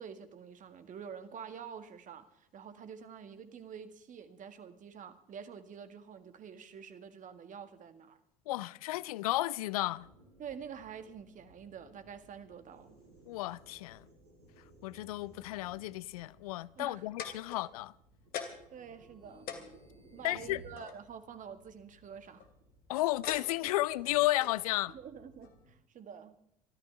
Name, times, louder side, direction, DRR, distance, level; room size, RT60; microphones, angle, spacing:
voice 1, 0.0-8.2 10.4-13.0 16.8-17.0 18.7-19.5 20.1-22.4 24.9-26.4, right 7 dB, 45° right, 1.8 m, -47 dB
voice 2, 8.5-10.1 13.3-14.1 14.8-17.9 20.2-20.6 22.9-24.9, left 17 dB, 75° left, 0.5 m, -33 dB
sound 1, 10.0-25.7, right 1 dB, 80° right, 5.1 m, -60 dB
sound 2, 17.1-17.9 18.3-18.8 19.1-19.2 19.5-21.0 22.1-22.5 23.2-23.8 24.4-24.6 25.4-25.5, left 8 dB, 55° left, 2.7 m, -43 dB
25.5 x 13.5 x 3.4 m
hypercardioid pair, 65°, 19 cm